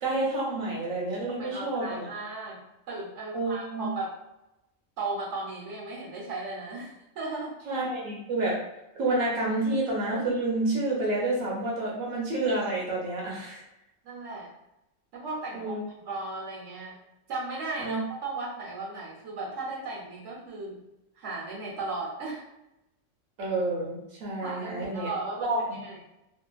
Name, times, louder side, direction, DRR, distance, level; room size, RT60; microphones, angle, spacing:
voice 1, 0.0-2.1 3.3-3.9 7.7-8.6 8.9-13.6 15.5-15.8 17.8-18.0 23.4-25.1 25.4-25.6, right 2 dB, 85° right, -3 dB, 1.1 m, -29 dB
voice 2, 1.4-2.6 2.9-4.1 5.0-7.5 14.0-14.5 15.1-15.8 16.0-17.0 17.3-20.8 21.1-22.4 24.4-26.0, right 3 dB, 65° right, -5 dB, 1.3 m, -36 dB
2.8 x 2.6 x 2.3 m, 0.92 s
omnidirectional pair, 1.3 m